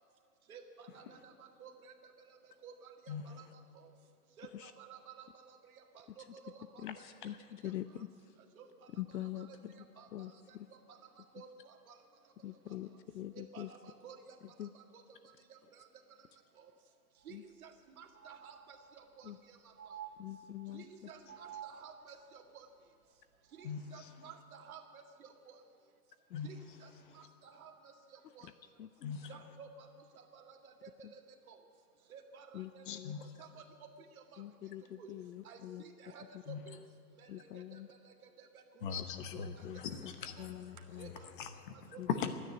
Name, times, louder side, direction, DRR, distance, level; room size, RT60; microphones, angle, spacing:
voice 1, 0.5-2.1 2.6-3.5 4.4-5.5 5.9-7.0 7.6-7.7 8.6-8.7 9.2-9.6 10.0-10.3 10.9-11.0 11.3-11.9 13.3-14.2 14.9-15.0 15.5-15.8 16.6-16.7 17.3-17.4 17.6-19.6 20.7-22.7 23.6-25.6 26.4-26.9 27.1-27.8 28.3-28.5 29.3-29.9 30.2-31.2 31.5-31.6 32.1-33.9 34.3-34.4 35.0-35.1 35.4-36.8 37.2-38.5 38.8-39.0 39.6-39.8 40.4-40.5 41.0-41.3 41.9-42.0, right 6 dB, 55° right, 3 dB, 2.0 m, -54 dB
voice 2, 6.8-8.3 9.0-9.7 10.1-10.7 12.4-13.7 14.6-14.7 17.3-17.4 19.2-19.4 20.2-21.1 26.3-26.4 28.4-28.5 28.8-29.3 31.0-31.1 32.5-33.2 34.4-35.8 37.3-37.9 39.5-40.1 40.4-41.1 42.0-42.3, left 13 dB, 80° left, 12 dB, 0.8 m, -45 dB
sound 1, 17.2-17.3 17.6-17.7 18.1-19.1 19.8-20.8 21.3-22.2 23.5-23.6, right 9 dB, 10° right, 0.4 m, -50 dB
voice 3, 23.6-24.1 26.3-26.8 27.0-27.2 29.0-29.3 32.9-33.3 36.5-36.6 38.8-42.3, left 7 dB, 30° left, 9 dB, 0.9 m, -41 dB
13.0 x 10.0 x 10.0 m, 2.1 s
hypercardioid pair, 155°, 50 cm